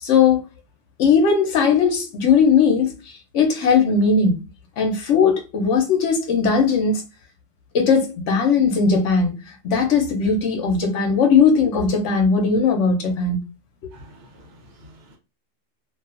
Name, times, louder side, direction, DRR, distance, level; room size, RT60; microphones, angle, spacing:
voice 1, 0.0-0.4 1.0-4.4 4.8-7.0 7.7-9.3 9.6-13.4, left 5 dB, 75° left, 1.0 m, -18 dB
voice 2, 13.9-15.2, equal, 65° right, 1.1 m, -48 dB
2.6 x 2.3 x 2.4 m
omnidirectional pair, 1.3 m